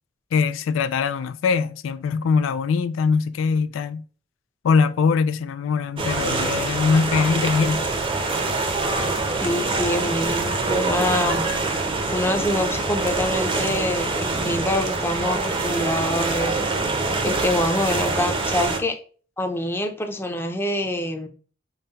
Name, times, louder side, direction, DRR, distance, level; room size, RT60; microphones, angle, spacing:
voice 1, 0.3-4.0 4.6-7.9, left 5 dB, 85° left, 0.3 m, -22 dB
sound 1, 6.0-18.8, right 3 dB, 30° right, 0.6 m, -25 dB
voice 2, 9.4-11.4 12.1-16.5 17.2-19.0 19.4-21.3, left 1 dB, 10° left, 0.6 m, -25 dB
5.5 x 2.2 x 4.0 m
head